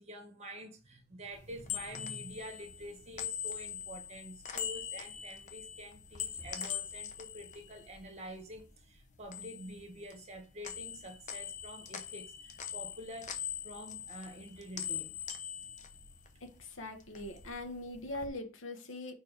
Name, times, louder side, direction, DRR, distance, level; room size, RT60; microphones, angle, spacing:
voice 1, 0.0-13.4 13.6-15.2, equal, 30° right, 1.7 m, -47 dB
sound 1, 1.4-8.7 9.0-10.4 10.6-16.6 17.0-18.3, left 8 dB, 40° left, 1.0 m, -42 dB
voice 2, 16.4-19.1, left 2 dB, 70° left, 1.4 m, -42 dB
5.2 x 4.6 x 5.0 m
head